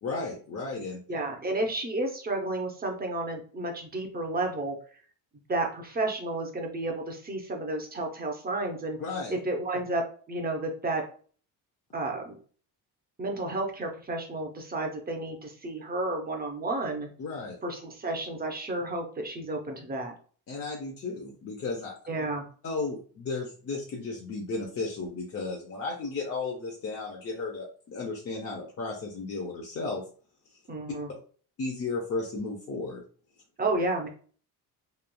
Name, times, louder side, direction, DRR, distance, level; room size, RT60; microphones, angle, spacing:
voice 1, 0.0-1.0 9.0-9.4 17.2-17.6 20.5-21.9 22.6-30.0 31.6-33.0, left 3 dB, 35° left, -1 dB, 0.6 m, -34 dB
voice 2, 1.1-4.8 5.5-9.0 9.3-10.0 10.3-11.0 11.9-12.4 13.2-17.1 17.6-20.1 22.1-22.4 30.7-31.1 33.6-34.1, right 2 dB, 20° right, 3 dB, 0.7 m, -31 dB
3.1 x 2.3 x 2.2 m, 0.43 s
cardioid pair, 110°, 42 cm